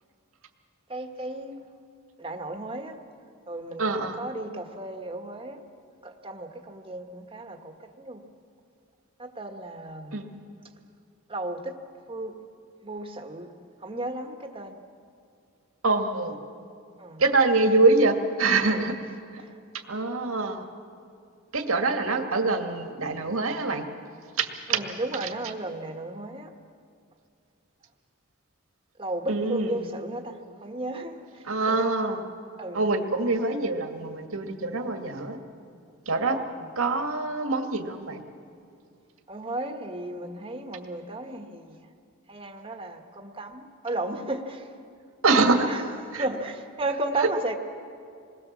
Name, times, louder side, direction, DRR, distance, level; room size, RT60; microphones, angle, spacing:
voice 1, 0.9-1.7 2.2-3.0 3.5-3.9 4.2-5.6 6.0-8.2 9.2-10.2 11.3-11.7 12.1-12.3 12.8-13.5 13.8-14.8 17.0-17.2 18.7-18.8 24.7-26.5 29.0-31.9 32.6-32.8 36.3-36.5 39.3-41.8 42.3-44.7 45.7-45.8 46.1-47.5, right 2 dB, 25° right, 4 dB, 1.5 m, -34 dB
voice 2, 3.8-4.2 10.1-10.4 15.8-16.4 17.2-18.9 19.3-19.4 19.9-20.6 21.5-23.9 24.4-24.8 25.2-25.3 29.3-29.9 31.4-32.2 32.7-35.4 36.1-36.4 36.8-38.2 45.2-45.7 46.1-46.3, right 3 dB, 75° right, 4 dB, 2.0 m, -25 dB
27.5 x 20.5 x 7.4 m, 2.4 s
head